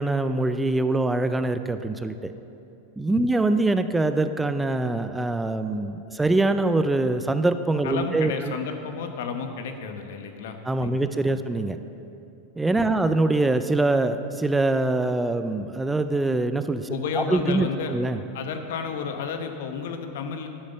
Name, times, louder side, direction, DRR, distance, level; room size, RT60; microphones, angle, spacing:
voice 1, 0.0-2.3 3.0-8.5 10.7-11.8 12.6-16.9 17.2-18.2, right 2 dB, 10° right, 10 dB, 0.4 m, -24 dB
voice 2, 7.8-11.4 12.7-13.1 16.9-18.0 18.3-20.5, left 6 dB, 70° left, 6 dB, 1.1 m, -32 dB
11.0 x 7.6 x 6.7 m, 2.8 s
supercardioid pair, 125°, 0 cm